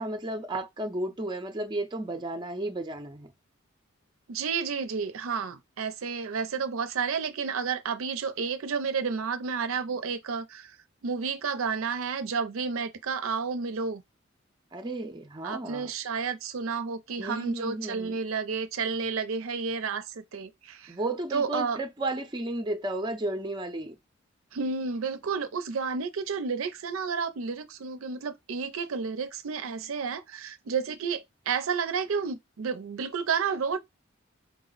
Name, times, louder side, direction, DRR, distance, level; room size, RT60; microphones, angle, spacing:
voice 1, 0.0-3.3 14.7-15.9 17.2-18.2 20.9-24.0, right 1 dB, 20° right, 0.6 m, -33 dB
voice 2, 4.3-10.7 11.0-14.0 15.4-21.0 21.3-21.8 24.5-33.8, right 5 dB, 80° right, 0.5 m, -31 dB
4.7 x 2.0 x 3.9 m
head